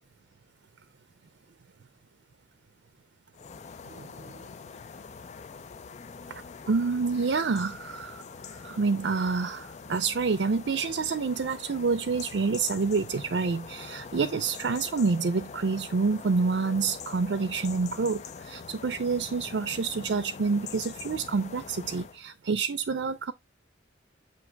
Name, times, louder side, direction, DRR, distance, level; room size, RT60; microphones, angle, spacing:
sound 1, 3.3-22.2, left 5 dB, 40° left, 0.4 m, -44 dB
voice 1, 3.9-4.4 6.3-6.4 6.7-8.2 8.6-23.3, right 4 dB, 70° right, 0.5 m, -28 dB
8.1 x 2.9 x 4.5 m
head